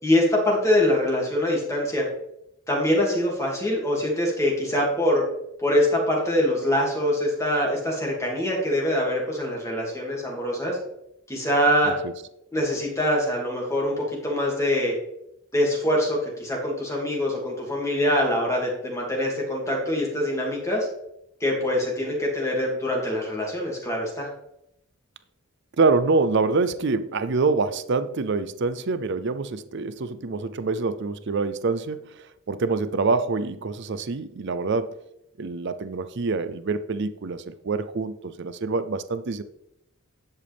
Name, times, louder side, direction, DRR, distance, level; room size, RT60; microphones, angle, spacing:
voice 1, 0.0-2.1 2.7-5.2 5.6-10.8 11.3-11.9 12.5-14.9 15.5-20.9 21.4-24.3, left 1 dB, 15° left, -2 dB, 2.5 m, -24 dB
voice 2, 25.8-34.9 35.4-39.4, right 4 dB, 55° right, 12 dB, 0.5 m, -26 dB
11.0 x 8.0 x 3.5 m, 0.80 s
head